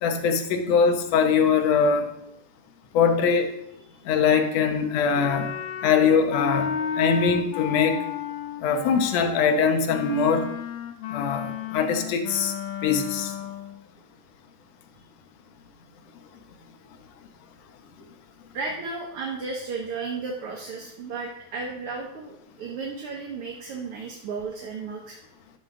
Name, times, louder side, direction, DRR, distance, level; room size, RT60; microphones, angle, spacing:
voice 1, 0.0-2.1 2.9-3.5 4.1-5.5 5.8-8.0 8.6-10.4 11.1-12.5 12.8-13.3, left 6 dB, 70° left, 5 dB, 2.0 m, -22 dB
Wind instrument woodwind instrument, 5.2-13.8, left 8 dB, 85° left, 2.1 m, -33 dB
voice 2, 18.5-25.2, right 4 dB, 60° right, -1 dB, 1.7 m, -34 dB
13.0 x 6.3 x 3.8 m, 0.79 s
omnidirectional pair, 3.3 m